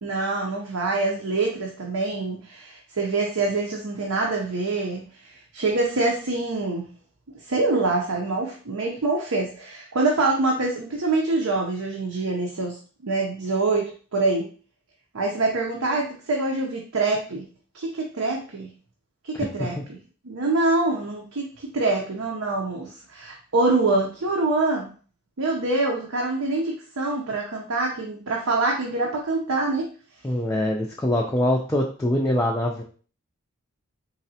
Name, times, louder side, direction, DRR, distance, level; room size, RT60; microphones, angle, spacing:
voice 1, 0.0-5.0 5.5-6.9 7.5-12.8 13.0-13.8 14.1-14.5 15.1-17.4 17.7-18.7 19.3-20.0 20.2-21.5 21.7-24.9 25.4-29.9, right 3 dB, 80° right, -1 dB, 0.7 m, -25 dB
voice 2, 19.3-19.7 30.2-32.8, left 1 dB, 10° left, -1 dB, 0.3 m, -24 dB
4.0 x 3.1 x 2.8 m, 0.40 s
head